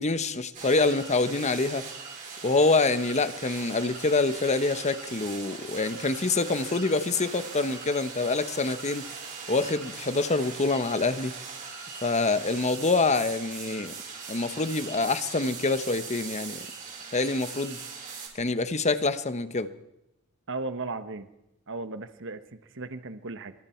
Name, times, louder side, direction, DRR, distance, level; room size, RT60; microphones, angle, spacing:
voice 1, 0.0-1.9 2.4-9.1 9.5-11.3 12.0-13.9 14.3-16.7 17.1-17.8 18.3-19.7, left 3 dB, 30° left, 11 dB, 1.2 m, -26 dB
sound 1, 0.5-18.3, right 5 dB, 40° right, 5.8 m, -40 dB
voice 2, 20.5-21.3 21.7-23.5, right 3 dB, 60° right, 10 dB, 1.3 m, -36 dB
27.0 x 24.0 x 4.6 m, 0.84 s
head